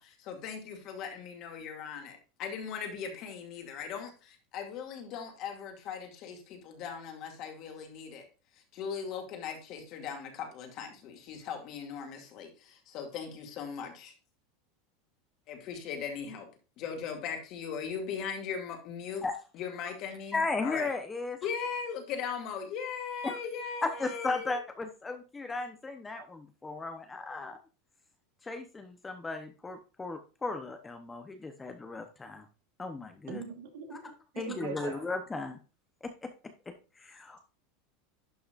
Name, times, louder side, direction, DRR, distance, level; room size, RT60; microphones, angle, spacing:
voice 1, 0.0-8.3 8.7-14.1 15.5-16.5 16.8-19.2 19.5-20.9 21.4-24.6, left 6 dB, 35° left, 3 dB, 2.3 m, -39 dB
voice 2, 20.3-21.4 23.2-23.4 23.8-27.6 28.4-32.4 32.8-33.4 34.4-35.6 36.0-36.3 36.7-37.4, left 3 dB, 10° left, 7 dB, 0.8 m, -36 dB
voice 3, 33.3-34.1 34.4-35.0, right 7 dB, 80° right, 3 dB, 3.0 m, -41 dB
11.5 x 5.7 x 2.5 m, 0.32 s
supercardioid pair, 170°, 0 cm